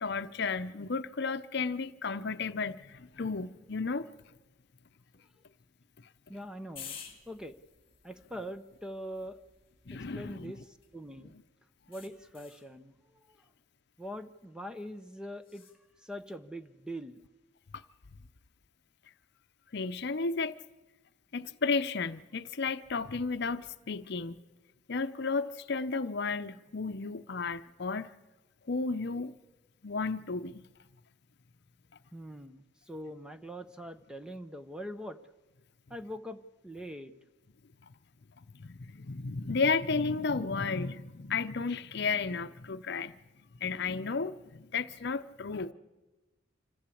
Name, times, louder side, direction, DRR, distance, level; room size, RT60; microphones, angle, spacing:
voice 1, 0.0-4.1 9.9-10.6 17.7-17.8 19.7-20.6 21.3-24.4 24.9-28.1 28.7-29.3 29.8-30.6 38.5-43.1 43.6-45.7, left 4 dB, 60° left, 0.7 m, -33 dB
voice 2, 6.3-7.0 7.3-7.5 8.0-9.4 10.1-10.6 10.9-11.3 11.9-13.0 14.0-15.6 16.0-17.2 32.1-35.2 35.9-37.1, equal, 5° right, 0.8 m, -42 dB
sound 1, 6.8-11.2 11.9-12.7 15.4-15.8, left 7 dB, 30° left, 2.4 m, -51 dB
26.0 x 15.0 x 8.5 m
head